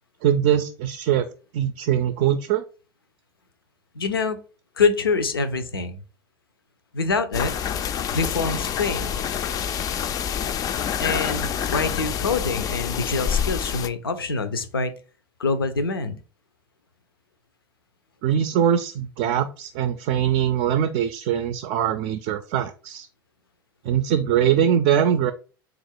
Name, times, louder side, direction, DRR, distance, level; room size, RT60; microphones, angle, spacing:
voice 1, 0.2-1.3 1.5-2.6 18.2-23.1 23.8-25.3, right 9 dB, 50° right, 9 dB, 0.4 m, -22 dB
voice 2, 3.9-4.4 4.8-6.0 6.9-7.5 8.1-9.2 11.0-14.9 15.4-16.2, left 4 dB, 80° left, 11 dB, 0.5 m, -25 dB
sound 1, 7.3-13.9, left 8 dB, 30° left, 0.4 m, -27 dB
3.9 x 2.5 x 4.4 m, 0.36 s
figure-of-eight pair, 80°, 12 cm